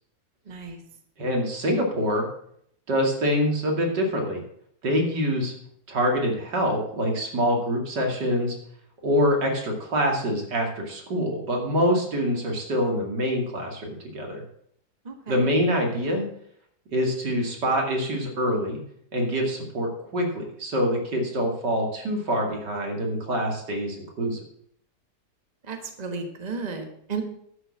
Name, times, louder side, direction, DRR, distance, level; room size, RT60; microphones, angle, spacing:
voice 1, 0.5-0.8 15.0-15.4 25.7-27.2, right 4 dB, 25° right, 5 dB, 1.4 m, -33 dB
voice 2, 1.2-2.3 2.9-4.4 4.8-5.5 5.9-8.6 9.0-14.4 15.3-16.3 16.9-18.8 19.1-24.4, equal, 90° right, 1 dB, 3.1 m, -25 dB
11.0 x 6.6 x 7.3 m, 0.68 s
omnidirectional pair, 1.8 m